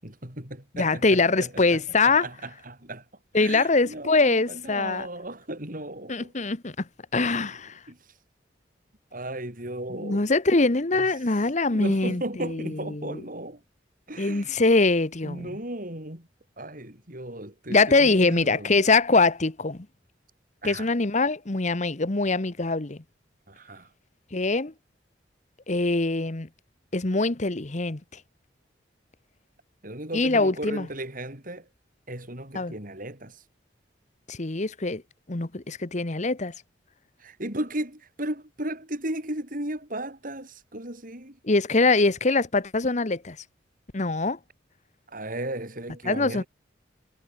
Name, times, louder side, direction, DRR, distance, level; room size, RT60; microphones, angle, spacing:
voice 1, 0.0-3.0 3.3-6.3 7.2-7.6 7.9-8.0 9.1-10.3 10.9-11.1 11.7-13.6 14.1-14.6 15.2-16.3 16.6-18.8 20.6-20.9 23.5-23.9 29.8-31.7 32.1-33.4 37.2-41.4 45.1-46.5, right 1 dB, 50° right, 7.7 m, -36 dB
voice 2, 0.8-2.2 3.3-5.1 6.1-6.7 7.1-7.8 10.0-13.2 14.2-15.5 17.7-19.9 20.6-23.0 24.3-24.7 25.7-26.5 26.9-28.0 30.1-30.9 32.5-32.7 34.3-35.0 35.3-36.5 41.4-43.4 43.9-44.4 46.1-46.4, left 3 dB, 40° left, 1.1 m, -23 dB
head